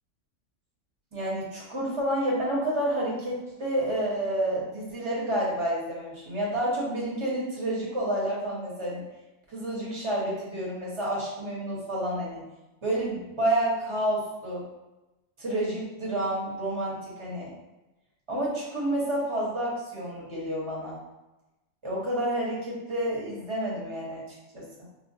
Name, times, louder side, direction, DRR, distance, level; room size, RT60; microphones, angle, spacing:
voice 1, 1.1-9.0 9.5-12.4 12.8-14.7 15.4-17.5 18.3-21.0 21.8-24.9, right 1 dB, 25° right, -5 dB, 0.7 m, -29 dB
4.3 x 2.0 x 2.6 m, 1.0 s
omnidirectional pair, 1.5 m